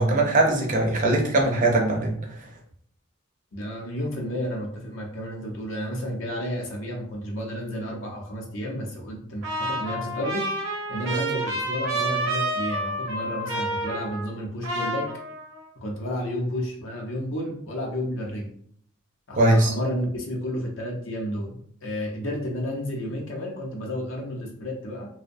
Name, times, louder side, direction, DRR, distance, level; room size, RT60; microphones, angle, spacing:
voice 1, 0.0-2.1 19.4-19.7, right 2 dB, 40° right, 0 dB, 0.5 m, -20 dB
voice 2, 3.5-15.1 15.8-18.5 19.3-25.1, equal, 70° left, -1 dB, 0.6 m, -31 dB
Trumpet, 9.4-14.4 14.6-15.6, right 1 dB, 90° right, 0.7 m, -29 dB
2.5 x 2.1 x 2.5 m, 0.63 s
head